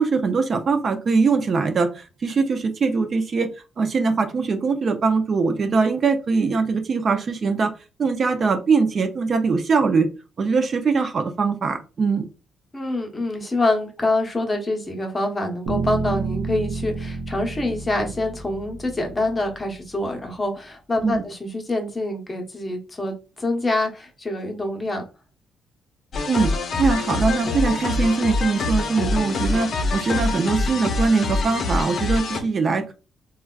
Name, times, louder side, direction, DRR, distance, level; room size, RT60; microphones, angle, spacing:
voice 1, 0.0-3.5 3.8-7.7 8.0-10.1 10.4-12.3 21.0-21.2 26.3-26.5 26.8-32.9, right 4 dB, 45° right, 7 dB, 0.4 m, -22 dB
voice 2, 12.7-25.0, left 2 dB, 25° left, 2 dB, 0.8 m, -26 dB
sound 1, 15.7-19.7, right 4 dB, 85° right, 0.7 m, -30 dB
sound 2, 26.1-32.4, left 3 dB, 55° left, 0.5 m, -25 dB
3.3 x 2.2 x 2.3 m, 0.32 s
cardioid pair, 90°, 0 cm